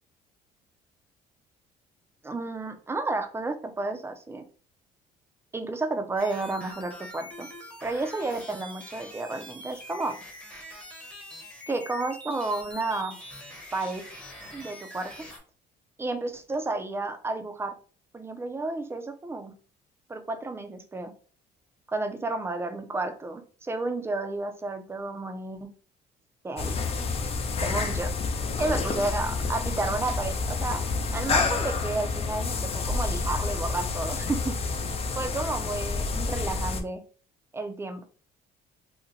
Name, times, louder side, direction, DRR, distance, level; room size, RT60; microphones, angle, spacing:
voice 1, 2.2-4.5 5.5-7.5 7.8-10.2 11.7-13.2 13.7-14.0 14.5-15.3 16.0-17.8 18.1-19.5 20.1-21.1 21.9-25.7 26.4-26.8 27.6-28.1 28.6-30.9 31.1-34.8 35.1-37.0 37.5-38.0, right 2 dB, 15° right, 6 dB, 0.5 m, -31 dB
sound 1, 6.2-15.4, left 1 dB, 5° left, 0.9 m, -44 dB
sound 2, 26.6-36.8, left 4 dB, 35° left, 0.5 m, -29 dB
2.8 x 2.1 x 3.8 m, 0.41 s
cardioid pair, 110°, 17 cm